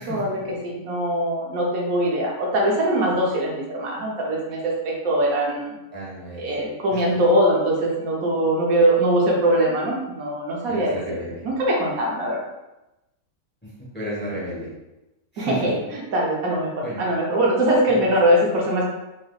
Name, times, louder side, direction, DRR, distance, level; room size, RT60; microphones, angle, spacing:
voice 1, 0.0-5.8 6.4-11.0 11.4-12.4 15.4-18.9, right 1 dB, 85° right, -2 dB, 1.3 m, -22 dB
voice 2, 5.9-6.4 6.9-7.0 10.7-11.4 13.6-14.7 15.3-15.7 16.8-17.0 17.9-18.0, equal, 10° left, -7 dB, 1.0 m, -33 dB
3.4 x 3.3 x 2.3 m, 0.99 s
omnidirectional pair, 1.4 m